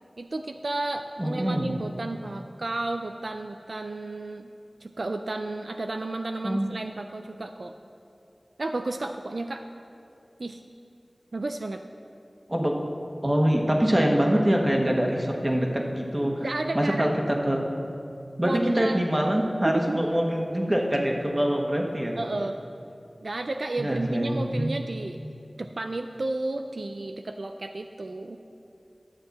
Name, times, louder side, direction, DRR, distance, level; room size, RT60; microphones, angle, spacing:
voice 1, 0.2-4.5 4.8-7.8 8.6-9.7 10.4-10.6 11.3-11.8 16.4-17.1 18.4-19.0 19.6-20.0 22.2-22.6 23.2-25.2 25.6-28.4, right 2 dB, 75° right, 6 dB, 0.3 m, -32 dB
voice 2, 1.2-1.7 6.4-6.7 12.5-12.8 13.2-16.4 16.7-17.6 18.4-22.2 23.8-24.7, equal, 25° right, 1 dB, 1.2 m, -24 dB
11.5 x 7.7 x 4.1 m, 2.6 s
wide cardioid pair, 50°, 0 cm